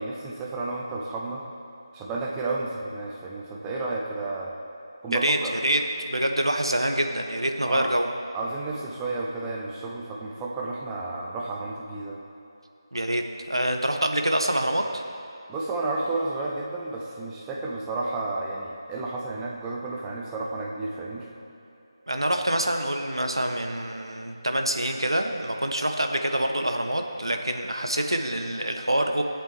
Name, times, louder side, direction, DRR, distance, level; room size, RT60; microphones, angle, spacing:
voice 1, 0.0-1.4 1.9-4.5 5.0-5.5 7.6-7.9 8.3-12.2 15.5-21.3, right 2 dB, 10° right, -3 dB, 0.7 m, -31 dB
voice 2, 5.1-8.1 12.9-15.0 22.1-29.2, right 1 dB, 75° right, 4 dB, 0.9 m, -26 dB
16.0 x 8.1 x 3.2 m, 2.6 s
figure-of-eight pair, 160°, 3 cm